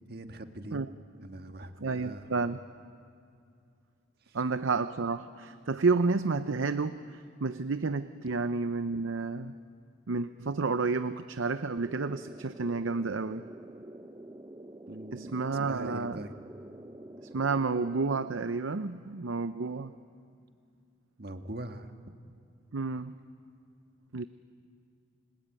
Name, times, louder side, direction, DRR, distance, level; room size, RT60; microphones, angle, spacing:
voice 1, 0.1-0.8 1.2-2.4 4.2-4.4 14.9-15.3 15.6-16.3 21.2-21.9, right 1 dB, 55° right, 6 dB, 1.6 m, -42 dB
voice 2, 1.8-2.6 4.3-9.5 10.1-13.4 15.1-16.2 17.3-19.9 22.7-23.2 24.1-24.2, right 4 dB, 85° right, 11 dB, 0.7 m, -30 dB
sound 1, 11.8-18.5, right 1 dB, 20° right, 0.6 m, -47 dB
30.0 x 21.5 x 9.0 m, 2.4 s
head